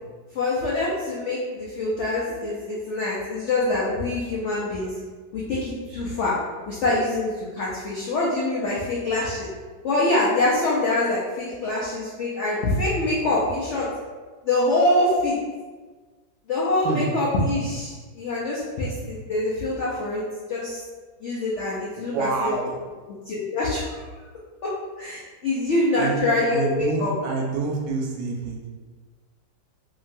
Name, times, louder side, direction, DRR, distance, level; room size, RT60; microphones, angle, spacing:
voice 1, 0.3-4.9 5.3-6.3 6.7-9.5 9.8-13.9 14.4-15.4 16.5-20.2 20.5-20.8 21.2-22.5 23.3-24.0 25.0-27.1, left 2 dB, 85° left, -7 dB, 0.6 m, -25 dB
voice 2, 21.9-22.9 25.9-26.2 26.5-28.7, right 4 dB, 75° right, 0 dB, 1.2 m, -28 dB
2.9 x 2.8 x 2.5 m, 1.4 s
omnidirectional pair, 2.0 m